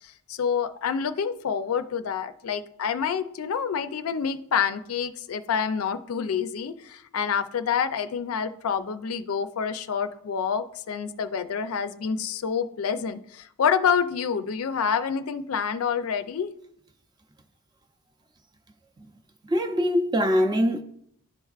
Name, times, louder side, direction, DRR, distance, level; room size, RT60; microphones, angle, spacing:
voice 1, 0.0-16.5, left 7 dB, 70° left, 0.4 m, -27 dB
voice 2, 19.5-20.8, equal, 20° right, 0.5 m, -22 dB
11.5 x 4.5 x 2.4 m
head